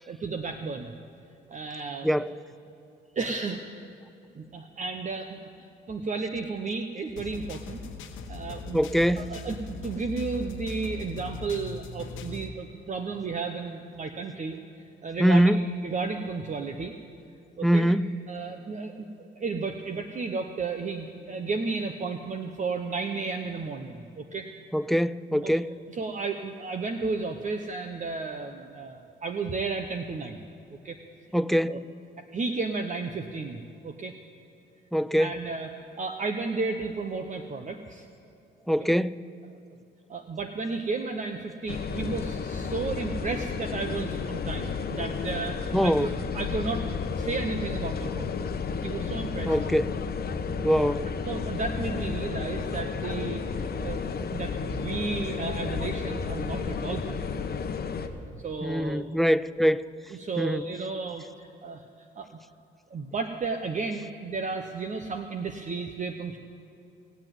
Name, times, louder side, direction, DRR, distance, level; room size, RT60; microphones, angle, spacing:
voice 1, 0.1-1.0 1.5-2.2 3.1-3.6 4.4-5.4 5.9-7.8 8.3-8.8 9.2-14.6 15.0-15.6 15.8-16.9 17.6-17.9 18.3-24.5 25.4-25.5 25.9-30.4 30.8-31.0 31.7-31.8 32.3-34.1 35.2-35.7 36.0-38.1 39.5-39.6 40.1-48.4 48.8-49.6 51.3-57.4 58.3-59.0 60.2-61.8 62.2-62.3 62.9-66.4, right 4 dB, 40° right, 0.9 m, -33 dB
voice 2, 2.0-2.3 8.7-9.3 15.2-15.7 17.6-18.1 24.7-25.7 31.3-31.8 34.9-35.4 38.7-39.2 45.7-46.1 49.5-50.0 50.6-51.1 58.6-59.9 60.4-60.7, equal, ahead, 0.3 m, -23 dB
sound 1, 7.2-12.5, left 3 dB, 85° left, 1.3 m, -39 dB
sound 2, 41.7-58.1, left 5 dB, 50° left, 1.1 m, -32 dB
18.5 x 8.0 x 9.1 m
cardioid pair, 90°, 20 cm